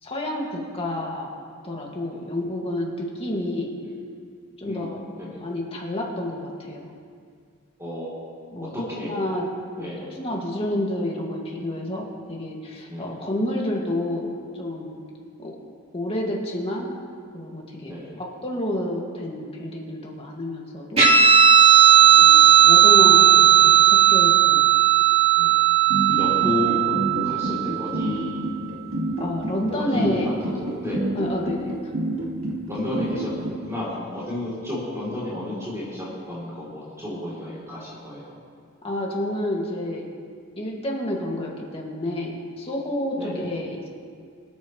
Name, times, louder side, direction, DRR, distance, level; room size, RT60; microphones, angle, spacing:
voice 1, 0.0-1.3 1.6-3.7 4.6-5.0 5.4-6.9 8.5-9.5 9.8-15.0 15.4-15.6 15.9-16.9 17.3-21.2 22.2-24.7 29.2-30.3 31.2-31.7 38.8-40.1 40.6-43.9, left 1 dB, 30° left, -2 dB, 2.2 m, -29 dB
voice 2, 7.8-8.2 8.7-9.2 9.8-10.1 12.9-13.1 15.4-15.5 17.9-18.2 22.0-22.4 25.4-25.5 26.1-26.9 27.2-28.4 29.7-31.1 32.7-33.3 33.7-38.3 43.2-43.4, left 1 dB, 15° right, -8 dB, 3.5 m, -32 dB
Guitar, 21.0-27.9, right 9 dB, 35° right, 3.4 m, -15 dB
sound 1, 25.9-33.5, right 1 dB, 85° right, 2.0 m, -27 dB
25.5 x 9.4 x 3.2 m, 2.1 s
head